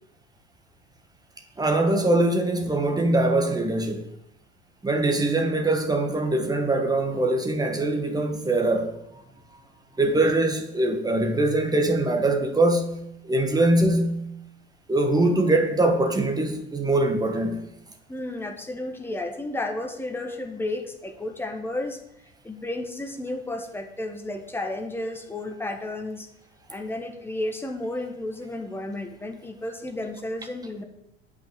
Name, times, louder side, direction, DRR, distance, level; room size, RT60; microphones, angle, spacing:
voice 1, 1.6-4.1 4.8-9.0 10.0-13.0 13.3-14.3 14.9-17.6, right 2 dB, 10° right, 1.4 m, -22 dB
voice 2, 18.1-22.0 22.4-26.3 26.7-30.8, left 2 dB, 5° left, 1.4 m, -32 dB
8.8 x 5.6 x 7.3 m
figure-of-eight pair, 70°, 32 cm